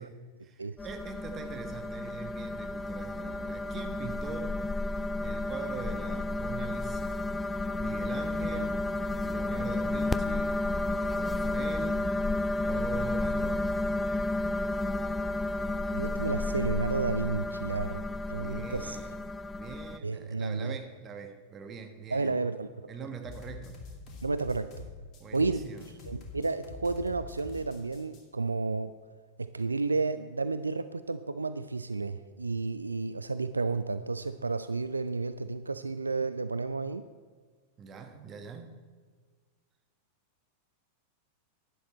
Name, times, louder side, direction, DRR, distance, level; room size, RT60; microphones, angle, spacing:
voice 1, 0.0-4.9 5.2-7.2 7.8-8.8 9.2-10.6 10.9-12.1 12.6-13.7 18.3-19.2 19.5-22.4 22.9-23.8 25.2-25.9 37.8-38.7, right 5 dB, 25° right, 6 dB, 1.3 m, -43 dB
sound 1, 0.8-20.0, left 2 dB, 10° left, 0.3 m, -32 dB
voice 2, 15.9-19.0 20.0-20.7 22.1-22.7 24.2-24.9 25.3-25.6 26.1-28.9 29.4-37.0, right 3 dB, 80° right, 12 dB, 0.3 m, -32 dB
sound 2, 23.2-28.2, left 4 dB, 35° left, 2.3 m, -45 dB
11.5 x 10.0 x 4.3 m, 1.5 s
figure-of-eight pair, 90°, 0 cm